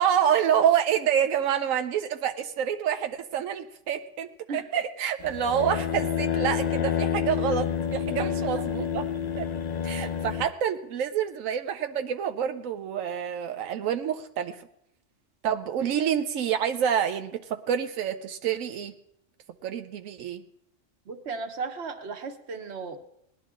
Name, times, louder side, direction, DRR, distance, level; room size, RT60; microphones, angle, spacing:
voice 1, 0.0-9.0 9.4-9.5 9.8-14.6 15.4-18.9 19.6-20.4, right 9 dB, 90° right, 8 dB, 1.0 m, -27 dB
sound 1, 5.2-10.5, left 8 dB, 50° left, 0.5 m, -29 dB
voice 2, 21.1-23.0, right 4 dB, 55° right, 7 dB, 1.4 m, -35 dB
19.5 x 11.5 x 3.7 m, 0.79 s
omnidirectional pair, 1.3 m